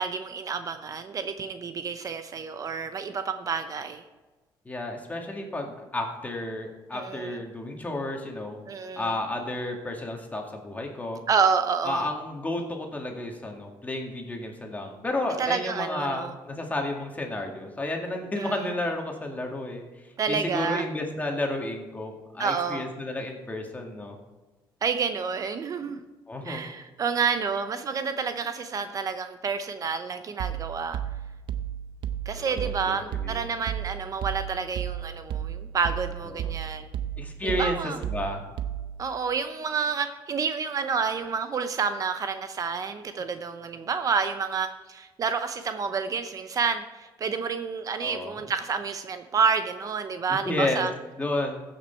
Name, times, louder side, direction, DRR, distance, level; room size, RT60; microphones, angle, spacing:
voice 1, 0.0-4.0 6.9-7.4 8.7-9.1 11.3-12.1 15.4-16.3 18.4-18.6 20.2-20.8 22.4-22.8 24.8-26.0 26.4-31.0 32.3-36.9 37.4-38.0 39.0-50.9, right 5 dB, 45° right, 9 dB, 0.7 m, -29 dB
voice 2, 4.7-8.6 9.0-11.2 11.9-19.8 20.3-24.2 26.3-26.6 32.4-33.4 36.3-36.5 37.2-38.4 48.0-48.4 50.3-50.9 51.2-51.6, left 1 dB, 20° left, 2 dB, 2.0 m, -31 dB
sound 1, 30.4-39.1, right 10 dB, 75° right, 0.7 m, -34 dB
15.0 x 6.2 x 4.5 m, 1.2 s
cardioid pair, 95°, 8 cm